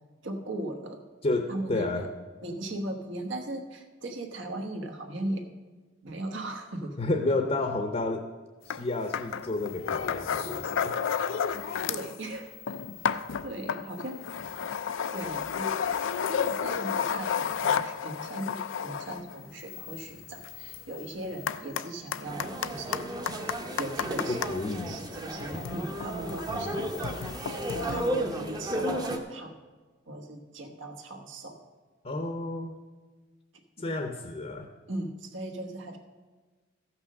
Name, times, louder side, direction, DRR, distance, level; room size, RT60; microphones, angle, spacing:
voice 1, 0.2-1.0 1.5-2.1 2.4-5.5 6.0-7.0 11.9-12.8 13.4-14.3 14.6-14.7 15.1-23.1 23.8-24.5 24.9-26.8 27.2-29.5 30.1-31.6 33.8-33.9 34.9-36.0, right 1 dB, 70° right, 5 dB, 1.2 m, -38 dB
voice 2, 1.2-2.1 7.0-8.2 8.6-10.9 24.3-25.0 26.5-26.9 32.0-32.8 33.8-34.7, left 2 dB, 35° left, 5 dB, 0.7 m, -31 dB
sound 1, 8.7-8.8 9.1-12.2 12.5-24.5 25.3-28.1, left 7 dB, 75° left, 0.4 m, -32 dB
sound 2, 22.2-29.2, right 1 dB, 20° right, 0.8 m, -34 dB
14.0 x 6.0 x 6.4 m, 1.3 s
head